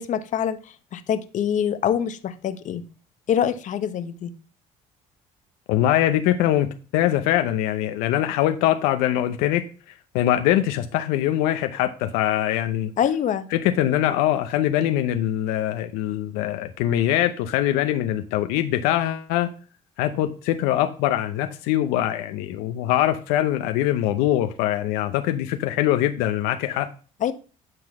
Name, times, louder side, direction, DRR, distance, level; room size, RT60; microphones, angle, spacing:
voice 1, 0.0-2.8 3.3-4.3 13.0-13.5 27.2-27.3, left 9 dB, 55° left, 11 dB, 1.0 m, -25 dB
voice 2, 5.7-6.7 6.9-9.6 10.1-12.9 13.5-19.5 20.0-26.9, left 12 dB, 90° left, 8 dB, 0.7 m, -22 dB
10.5 x 3.9 x 6.1 m, 0.37 s
supercardioid pair, 85°, 15 cm